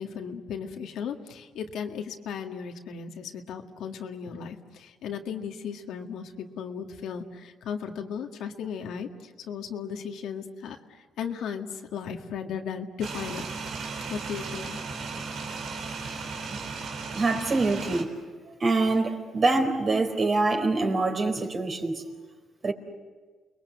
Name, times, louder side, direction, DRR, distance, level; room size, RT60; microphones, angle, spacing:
voice 1, 0.0-13.5 14.1-14.8, left 7 dB, 80° left, 4 dB, 2.0 m, -36 dB
sound 1, 13.0-18.0, right 4 dB, 75° right, 3.8 m, -36 dB
voice 2, 17.1-18.1 18.5-22.0 22.6-22.7, right 3 dB, 40° right, 4 dB, 4.3 m, -25 dB
29.5 x 21.5 x 8.3 m, 1.4 s
cardioid pair, 90°, 0 cm